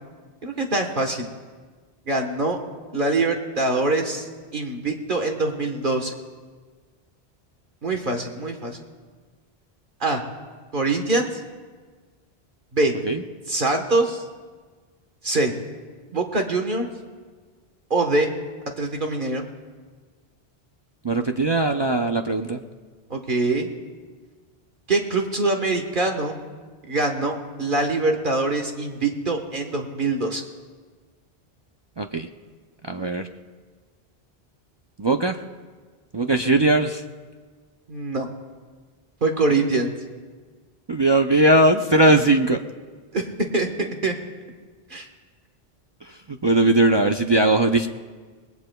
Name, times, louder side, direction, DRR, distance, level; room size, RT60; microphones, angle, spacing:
voice 1, 0.4-1.3 2.1-2.6 2.9-4.3 4.5-6.1 7.8-8.8 10.0-10.2 10.7-11.3 12.7-12.9 13.5-14.2 15.2-15.5 16.1-16.9 17.9-18.3 18.8-19.4 23.1-23.7 24.9-26.4 26.9-30.4 37.9-38.3 39.2-39.9 43.1-43.2 43.5-44.1 44.9-45.1, right 2 dB, 55° right, 3 dB, 1.4 m, -23 dB
voice 2, 21.0-22.6 32.0-32.3 32.9-33.3 35.0-35.4 36.1-37.0 40.9-42.6 46.0-47.9, right 2 dB, 35° right, 4 dB, 0.4 m, -19 dB
26.5 x 20.0 x 2.3 m, 1.5 s
omnidirectional pair, 1.1 m